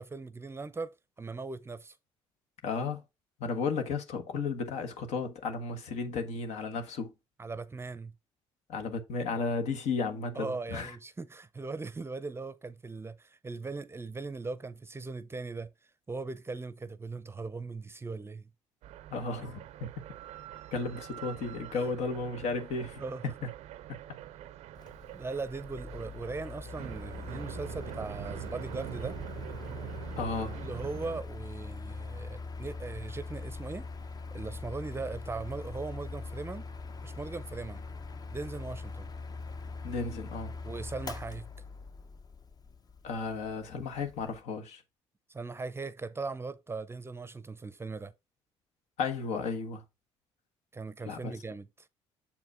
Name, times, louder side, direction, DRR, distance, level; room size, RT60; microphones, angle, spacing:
voice 1, 0.0-2.0 7.4-8.1 10.4-15.7 16.1-18.5 23.0-23.2 25.1-29.2 30.6-33.9 34.3-36.7 37.0-37.8 38.3-39.1 40.6-41.5 45.3-48.1 50.7-51.9, right 3 dB, 20° right, 0.6 m, -39 dB
voice 2, 2.6-3.0 3.4-7.1 8.7-11.0 19.1-19.9 20.7-23.5 30.2-30.6 39.8-40.5 43.0-44.8 49.0-49.8 51.0-51.3, left 4 dB, 70° left, 1.3 m, -34 dB
sound 1, 18.8-31.2, right 13 dB, 70° right, 0.5 m, -44 dB
Mechanical fan, 24.8-44.4, left 4 dB, 35° left, 0.8 m, -42 dB
7.1 x 4.8 x 3.5 m
supercardioid pair, 70°, 12 cm